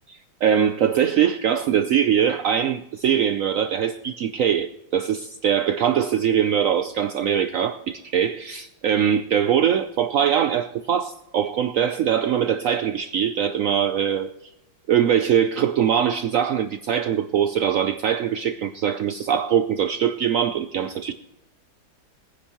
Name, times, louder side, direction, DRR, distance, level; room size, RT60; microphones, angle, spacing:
voice 1, 0.4-14.3 14.9-21.1, right 9 dB, 85° right, 0.7 m, -22 dB
21.5 x 9.9 x 3.0 m
omnidirectional pair, 2.1 m